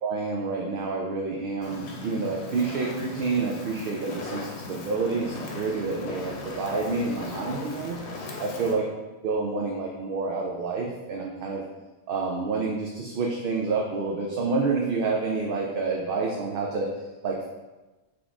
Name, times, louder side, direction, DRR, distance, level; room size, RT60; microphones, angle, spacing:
voice 1, 0.0-8.0 8.4-8.8 9.2-11.6 12.1-16.9 17.2-17.5, right 4 dB, 65° right, -1 dB, 0.7 m, -28 dB
Fire, 1.6-8.7, left 3 dB, 85° left, 0.9 m, -38 dB
4.1 x 3.0 x 3.4 m, 1.1 s
omnidirectional pair, 1.1 m